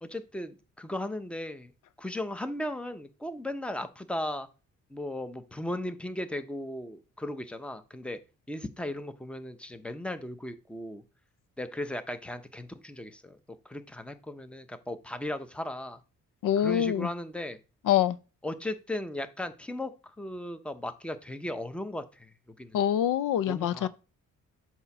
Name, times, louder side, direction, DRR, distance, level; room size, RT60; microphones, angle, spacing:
voice 1, 0.0-1.7 2.0-4.5 4.9-8.2 8.5-11.0 11.6-13.4 13.6-16.0 16.6-17.6 18.4-22.3 22.6-22.8 23.5-23.9, left 1 dB, 5° left, 0.8 m, -36 dB
voice 2, 16.4-17.1 17.9-18.2 22.7-23.9, left 10 dB, 80° left, 0.6 m, -25 dB
7.9 x 2.9 x 6.0 m
cardioid pair, 90°, 31 cm